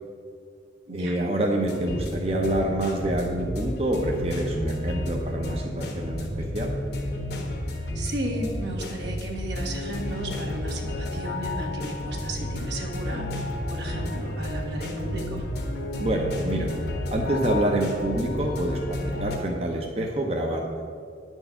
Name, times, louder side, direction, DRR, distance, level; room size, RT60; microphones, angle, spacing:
voice 1, 0.9-6.7 16.0-16.7 17.1-20.7, right 1 dB, 35° right, 0 dB, 0.7 m, -27 dB
sound 1, 1.6-19.4, left 1 dB, 65° left, 1.3 m, -31 dB
voice 2, 7.9-15.4, right 1 dB, 75° right, -1 dB, 1.4 m, -34 dB
9.9 x 4.5 x 6.8 m, 2.2 s
head